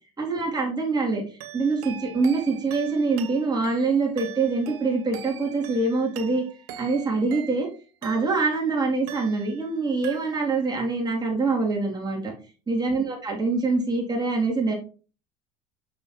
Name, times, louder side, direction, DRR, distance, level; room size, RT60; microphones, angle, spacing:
voice 1, 0.2-1.2 1.5-6.4 6.8-7.7 8.0-12.3 12.7-14.7, right 3 dB, 20° right, -1 dB, 2.8 m, -24 dB
sound 1, 1.4-8.6 9.1-9.8 10.0-10.7, right 10 dB, 70° right, 0.9 m, -42 dB
6.7 x 5.8 x 3.0 m, 0.36 s
hypercardioid pair, 70°, 19 cm